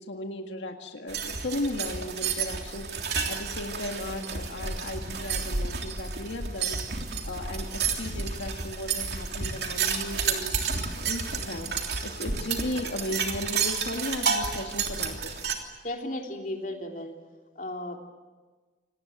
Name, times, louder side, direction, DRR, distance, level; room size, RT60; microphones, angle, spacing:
voice 1, 0.0-2.9 3.3-6.8 7.2-10.5 10.9-11.7 12.0-15.3, left 1 dB, 85° left, 3 dB, 1.9 m, -35 dB
sound 1, 1.1-15.5, right 5 dB, 60° right, 3.2 m, -31 dB
voice 2, 15.8-17.1 17.5-18.0, left 1 dB, 45° left, 2 dB, 3.1 m, -34 dB
28.0 x 19.0 x 9.0 m, 1.4 s
head